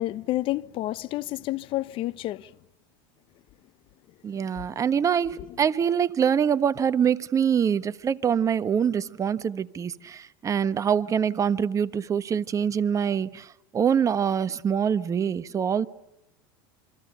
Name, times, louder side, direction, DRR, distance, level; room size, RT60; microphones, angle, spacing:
voice 1, 0.0-2.5, left 16 dB, 50° left, 0.9 m, -29 dB
voice 2, 4.2-15.9, right 7 dB, 25° right, 1.2 m, -25 dB
28.0 x 25.5 x 6.9 m
supercardioid pair, 110°, 12 cm